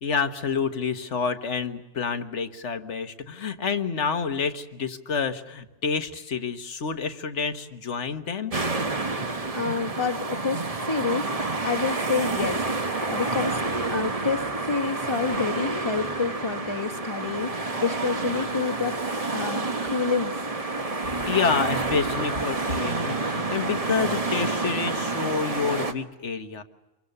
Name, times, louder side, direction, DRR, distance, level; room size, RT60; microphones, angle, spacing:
voice 1, 0.0-8.5 21.0-26.6, left 5 dB, 75° left, 9 dB, 1.6 m, -28 dB
sound 1, 8.5-25.9, right 3 dB, 30° right, 1.3 m, -29 dB
voice 2, 9.1-13.6 13.9-19.0 19.3-20.3, left 5 dB, 25° left, 5 dB, 1.4 m, -29 dB
26.0 x 23.5 x 6.7 m, 1.1 s
omnidirectional pair, 1.2 m